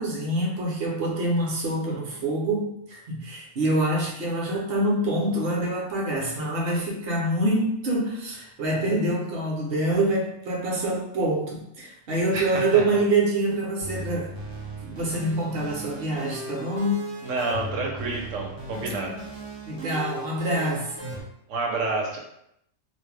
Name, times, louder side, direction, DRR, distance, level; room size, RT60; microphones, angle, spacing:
voice 1, 0.0-14.3 14.8-17.1 19.7-21.2, right 1 dB, 55° right, -2 dB, 0.8 m, -26 dB
voice 2, 12.3-12.8 17.2-19.2 21.5-22.2, right 3 dB, 80° right, 0 dB, 1.0 m, -29 dB
sound 1, 13.8-21.2, right 2 dB, 40° right, 0.4 m, -37 dB
2.5 x 2.1 x 3.2 m, 0.77 s
omnidirectional pair, 1.3 m